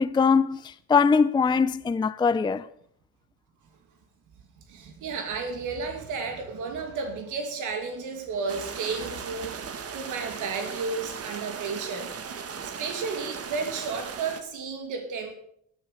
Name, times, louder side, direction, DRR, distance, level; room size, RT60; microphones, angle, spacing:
voice 1, 0.0-2.7, left 5 dB, 15° left, 0.4 m, -22 dB
voice 2, 4.7-12.1 12.6-15.3, right 4 dB, 85° right, 2.4 m, -33 dB
sound 1, 8.5-14.4, right 6 dB, 50° right, 1.5 m, -37 dB
11.5 x 9.8 x 6.8 m
cardioid pair, 90°, 30 cm